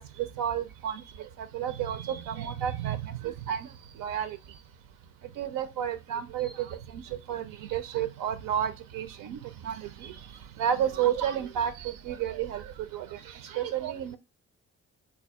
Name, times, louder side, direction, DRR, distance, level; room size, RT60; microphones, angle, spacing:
voice 1, 0.0-3.7 4.0-4.4 5.4-10.2 10.6-14.2, right 9 dB, 75° right, 10 dB, 0.5 m, -32 dB
3.3 x 2.3 x 3.4 m, 0.27 s
hypercardioid pair, 40°, 33 cm